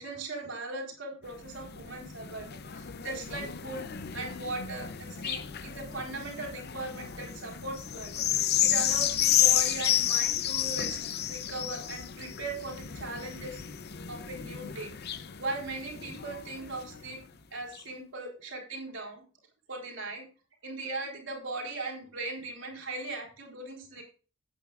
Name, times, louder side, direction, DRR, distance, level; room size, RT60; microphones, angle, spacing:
voice 1, 0.0-3.9 4.1-11.0 11.3-13.6 14.1-17.2 17.5-19.2 19.7-20.2 20.6-24.0, right 2 dB, 65° right, 1 dB, 4.1 m, -39 dB
sound 1, 1.3-17.1 17.7-17.8, left 11 dB, 50° left, 0.6 m, -31 dB
15.5 x 8.9 x 2.4 m, 0.36 s
head